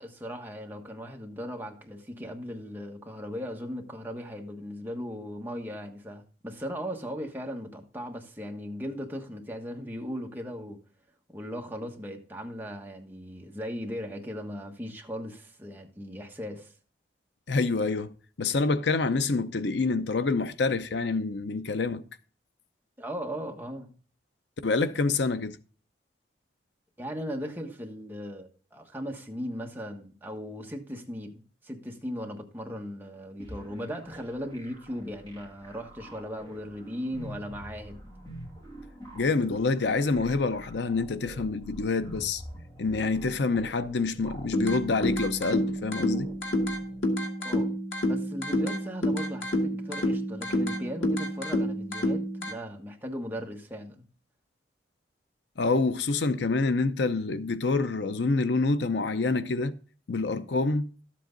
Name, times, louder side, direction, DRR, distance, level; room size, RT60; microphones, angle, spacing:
voice 1, 0.0-10.8 11.3-16.7 23.0-23.9 27.0-38.0 47.4-47.7 48.0-54.0, equal, 10° right, 1.3 m, -38 dB
voice 2, 17.5-18.1 18.4-22.0 24.6-25.6 39.1-42.4 42.8-46.3 55.6-59.7 60.1-60.9, left 3 dB, 70° left, 0.6 m, -27 dB
sound 1, 33.4-47.0, right 1 dB, 25° left, 2.7 m, -46 dB
sound 2, 44.5-52.5, equal, 85° left, 1.9 m, -29 dB
12.5 x 7.7 x 3.9 m
head